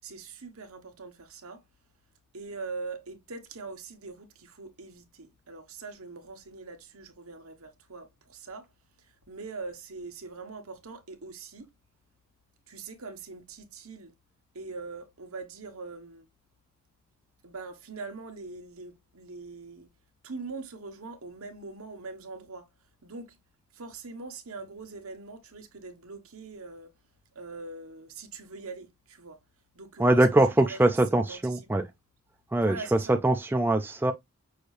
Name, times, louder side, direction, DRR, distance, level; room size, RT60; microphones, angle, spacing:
voice 1, 0.0-1.6 2.3-8.7 9.0-11.7 12.7-14.1 14.5-16.3 17.4-19.9 20.2-22.7 23.0-23.4 23.7-26.9 27.3-29.4 29.7-31.9 32.6-33.2, right 3 dB, 70° right, 1.2 m, -42 dB
voice 2, 30.0-31.9 32.5-34.1, right 1 dB, 10° right, 0.3 m, -23 dB
6.2 x 2.7 x 3.2 m
head